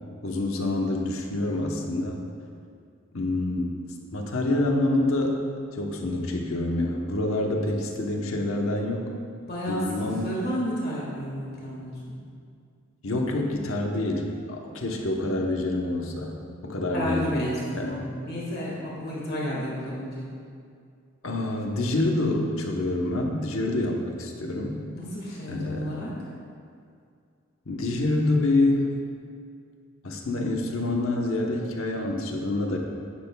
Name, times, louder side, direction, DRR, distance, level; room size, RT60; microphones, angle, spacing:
voice 1, 0.2-2.2 3.1-3.9 4.1-5.4 5.7-9.2 9.7-10.3 13.0-17.2 17.7-18.0 21.2-24.8 25.5-26.0 27.7-28.9 30.0-32.8, left 2 dB, 80° left, 1 dB, 1.0 m, -27 dB
voice 2, 9.5-12.1 16.9-20.3 24.9-26.1, equal, 50° left, -5 dB, 1.8 m, -31 dB
10.5 x 10.0 x 2.3 m, 2.3 s
head